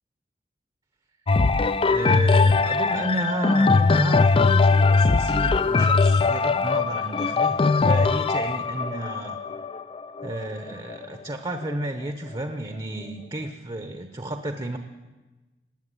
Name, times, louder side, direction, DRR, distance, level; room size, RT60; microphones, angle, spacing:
sound 1, 1.3-11.1 11.7-11.8, left 4 dB, 30° left, 0.4 m, -20 dB
voice 1, 1.9-9.4 10.2-14.8, right 1 dB, 30° right, 7 dB, 0.9 m, -32 dB
18.0 x 8.3 x 9.8 m, 1.2 s
head